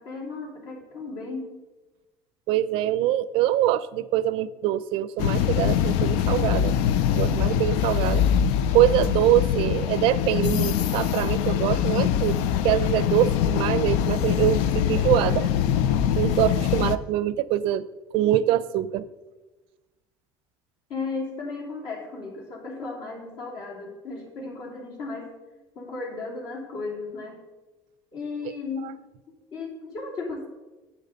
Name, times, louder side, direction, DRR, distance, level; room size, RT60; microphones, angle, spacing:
voice 1, 0.0-1.6 20.9-25.3 25.7-27.4 28.1-29.0 29.5-30.5, left 3 dB, 65° left, -1 dB, 3.0 m, -35 dB
voice 2, 2.5-6.8 7.1-8.2 8.7-15.5 16.1-17.9 18.1-19.1 28.8-28.9, right 13 dB, 70° right, 17 dB, 0.5 m, -24 dB
sound 1, 5.2-17.0, left 9 dB, 80° left, 0.5 m, -23 dB
10.5 x 8.2 x 4.0 m, 1.1 s
cardioid pair, 125°, 10 cm